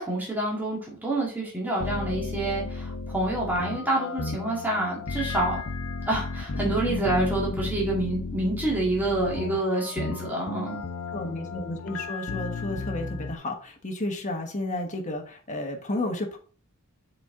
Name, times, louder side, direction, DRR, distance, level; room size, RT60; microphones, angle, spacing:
voice 1, 0.0-5.6 6.1-10.8, right 2 dB, 10° right, -4 dB, 2.0 m, -27 dB
sound 1, 1.8-13.4, left 3 dB, 65° left, 0.8 m, -33 dB
voice 2, 11.1-16.4, left 1 dB, 35° left, 2 dB, 1.4 m, -32 dB
7.1 x 4.5 x 3.7 m, 0.40 s
head